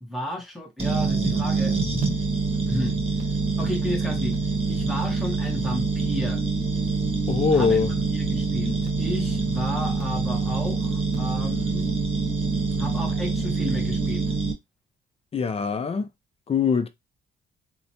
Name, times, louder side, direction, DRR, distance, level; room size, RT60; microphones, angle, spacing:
voice 1, 0.0-2.0 2.5-3.0 3.6-4.4 4.7-6.4 7.5-7.8 8.1-11.9 12.8-14.3, equal, ahead, 0.7 m, -32 dB
sound 1, 0.8-14.5, right 4 dB, 30° right, 0.9 m, -25 dB
voice 2, 7.3-7.9 15.3-16.1 16.5-16.9, left 5 dB, 30° left, 0.4 m, -22 dB
2.9 x 2.1 x 2.6 m
cardioid pair, 90°, 20 cm